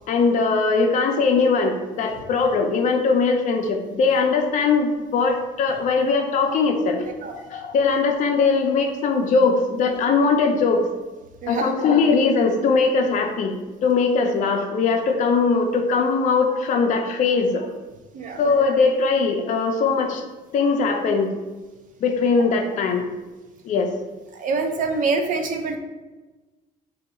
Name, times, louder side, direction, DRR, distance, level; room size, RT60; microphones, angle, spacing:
voice 1, 0.1-7.0 7.3-10.8 11.5-13.6 13.8-17.7 18.4-20.2 20.5-21.3 22.0-23.1 23.6-23.9, left 4 dB, 50° left, 3 dB, 0.4 m, -20 dB
voice 2, 24.3-25.8, right 4 dB, 50° right, 5 dB, 0.4 m, -25 dB
2.7 x 2.2 x 4.1 m, 1.2 s
cardioid pair, 110°, 17 cm